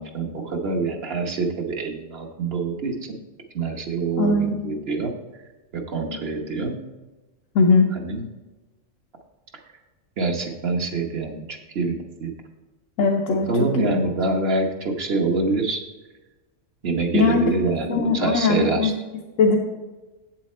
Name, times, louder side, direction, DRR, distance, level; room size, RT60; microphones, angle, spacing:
voice 1, 0.0-3.2 3.5-5.4 5.7-6.8 7.9-8.2 10.2-12.3 13.3-15.8 16.8-18.9, right 3 dB, 55° right, 3 dB, 1.2 m, -25 dB
voice 2, 4.2-4.6 7.5-7.9 13.0-13.5 13.8-13.9 17.1-17.5 17.9-18.9 19.4-19.6, left 4 dB, 85° left, 1 dB, 1.1 m, -19 dB
8.2 x 7.5 x 4.2 m, 1.1 s
omnidirectional pair, 1.3 m